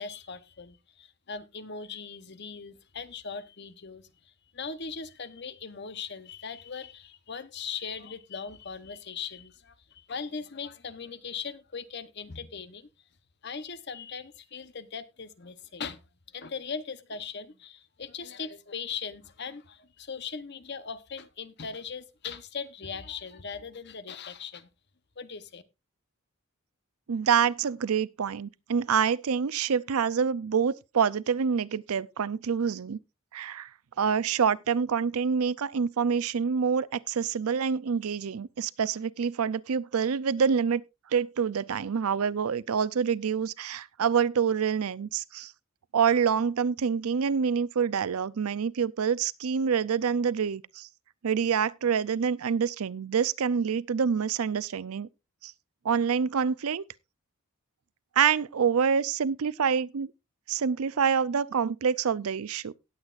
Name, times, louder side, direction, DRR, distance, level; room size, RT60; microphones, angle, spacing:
voice 1, 0.0-4.1 4.5-12.9 13.4-16.0 16.3-24.7 25.2-25.6, left 5 dB, 50° left, 0.9 m, -39 dB
voice 2, 27.1-33.0 33.3-33.7 34.0-40.8 41.1-45.5 45.9-50.9 51.2-55.1 55.4-55.5 55.8-56.8 58.2-60.1 60.5-62.7, right 6 dB, 80° right, 0.5 m, -26 dB
18.0 x 8.1 x 2.5 m
head